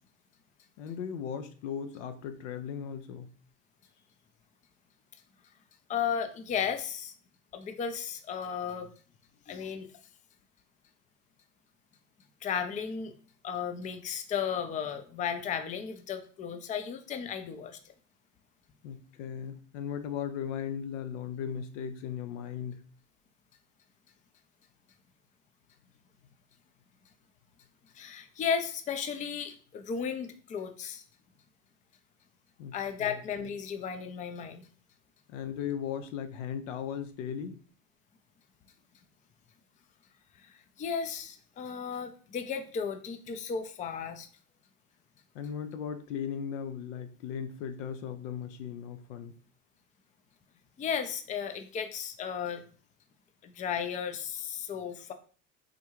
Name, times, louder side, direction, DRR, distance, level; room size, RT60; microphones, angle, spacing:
voice 1, 0.8-3.3 18.8-22.8 32.6-33.2 35.3-37.6 45.3-49.3, left 8 dB, 80° left, 8 dB, 0.5 m, -37 dB
voice 2, 5.9-7.1 7.5-8.9 9.5-9.9 12.4-13.1 13.4-17.8 27.9-31.0 32.7-34.7 40.4-44.3 50.8-52.6 53.4-55.1, left 7 dB, 20° left, 8 dB, 0.4 m, -34 dB
3.7 x 2.2 x 3.0 m, 0.41 s
hypercardioid pair, 80°, 37 cm